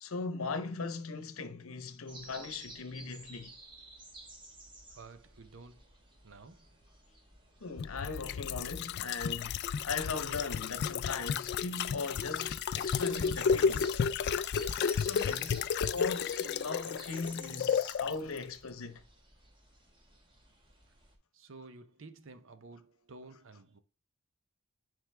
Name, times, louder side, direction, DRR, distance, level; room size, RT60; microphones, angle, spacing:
voice 1, 0.0-3.5 7.6-14.0 15.0-19.0, left 4 dB, 80° left, 0.8 m, -39 dB
sound 1, 2.1-21.2, right 2 dB, 25° right, 1.3 m, -54 dB
voice 2, 4.9-6.0 6.2-6.8 14.1-14.4 21.3-23.8, right 3 dB, 65° right, 0.7 m, -52 dB
sound 2, 7.8-18.1 18.4-18.5, left 6 dB, 50° left, 0.3 m, -32 dB
9.2 x 3.4 x 3.3 m
head